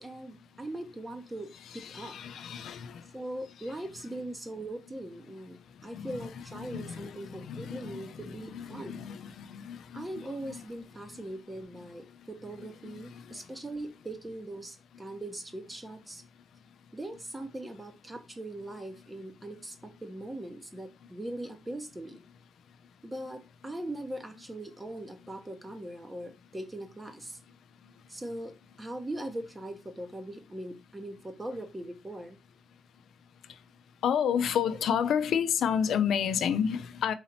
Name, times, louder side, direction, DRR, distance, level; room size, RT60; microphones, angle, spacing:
voice 1, 0.0-2.2 3.1-9.0 9.9-16.2 16.9-22.2 23.0-27.4 28.1-28.5 28.8-32.4 34.6-34.8, right 1 dB, 20° right, 1.0 m, -40 dB
voice 2, 1.7-2.9 5.9-6.2 6.6-10.0 10.5-10.6 34.0-37.1, left 8 dB, 75° left, 0.4 m, -30 dB
4.0 x 2.8 x 4.1 m
cardioid pair, 75°, 0 cm